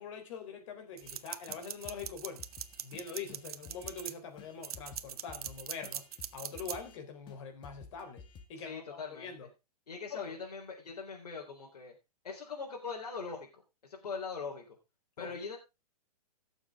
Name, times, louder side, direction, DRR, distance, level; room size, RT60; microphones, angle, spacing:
voice 1, 0.0-2.4 2.8-6.1 6.3-8.2 8.5-9.5 10.1-10.3 15.2-15.3, left 5 dB, 50° left, 3.7 m, -44 dB
sound 1, 1.0-1.2 1.5-1.6 1.8-4.1 4.4-7.0 7.3-7.4 7.6-8.4, left 6 dB, 25° left, 1.6 m, -53 dB
sound 2, 1.0-4.1 4.6-6.8, right 10 dB, 70° right, 1.0 m, -41 dB
voice 2, 8.6-9.3 9.9-11.9 12.2-13.5 13.8-14.8 15.2-15.6, left 5 dB, 85° left, 3.9 m, -41 dB
17.0 x 7.2 x 3.6 m
hypercardioid pair, 135°, 20 cm